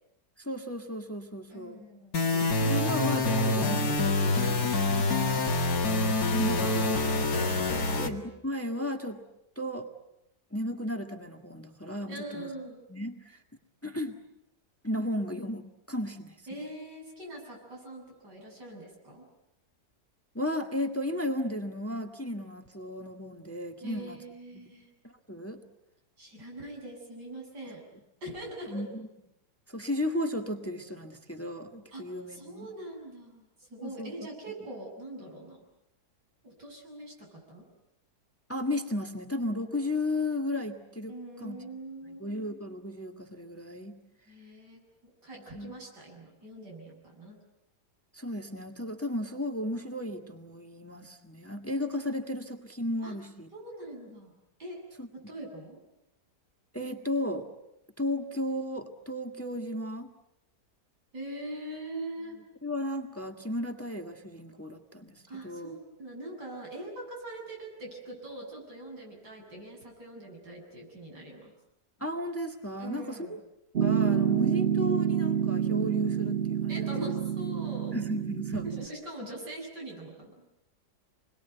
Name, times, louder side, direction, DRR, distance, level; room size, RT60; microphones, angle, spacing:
voice 1, 0.4-1.8 2.3-4.7 6.2-9.2 9.5-9.9 10.5-12.5 12.9-13.4 13.8-14.2 14.8-16.4 20.3-24.2 24.5-24.7 25.0-25.6 28.7-28.9 29.7-32.7 33.8-34.1 38.5-41.6 42.0-44.0 45.5-45.7 48.1-53.5 55.0-55.1 56.7-57.5 58.0-60.1 62.6-65.7 72.0-73.4 73.8-76.7 77.9-78.7, left 1 dB, 10° left, 5 dB, 1.6 m, -34 dB
voice 2, 1.5-2.2 7.7-8.1 12.1-12.8 16.5-19.2 23.8-24.9 26.2-27.8 28.2-28.8 31.9-32.0 32.3-35.6 36.4-37.6 41.1-42.4 44.3-47.4 53.0-53.1 53.5-54.3 54.6-54.8 55.1-55.8 61.1-62.4 65.3-71.5 72.8-73.4 76.7-77.9 78.6-80.3, right 1 dB, 90° right, -1 dB, 8.3 m, -42 dB
sound 1, 2.1-8.1, left 2 dB, 60° left, 2.4 m, -26 dB
Piano, 73.8-78.9, right 8 dB, 40° right, 1.2 m, -28 dB
27.5 x 22.0 x 9.2 m, 0.85 s
omnidirectional pair, 1.8 m